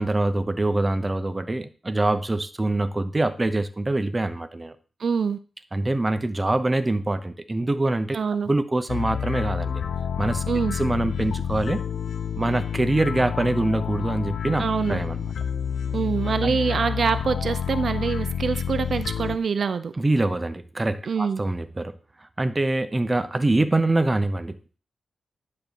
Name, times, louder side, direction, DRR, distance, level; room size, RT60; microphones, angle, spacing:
voice 1, 0.0-4.7 5.7-8.2 8.5-9.8 10.2-10.4 10.7-11.8 12.4-14.6 14.9-15.3 16.4-16.6 20.0-22.0 22.4-24.8, right 2 dB, 15° right, 11 dB, 0.7 m, -24 dB
voice 2, 5.0-5.4 8.1-8.5 10.5-10.7 14.6-15.0 15.9-19.9 21.1-21.4, right 5 dB, 50° right, 11 dB, 0.6 m, -25 dB
sound 1, 8.9-19.4, left 8 dB, 75° left, 0.6 m, -29 dB
10.5 x 4.3 x 7.0 m, 0.36 s
wide cardioid pair, 150°, 0 cm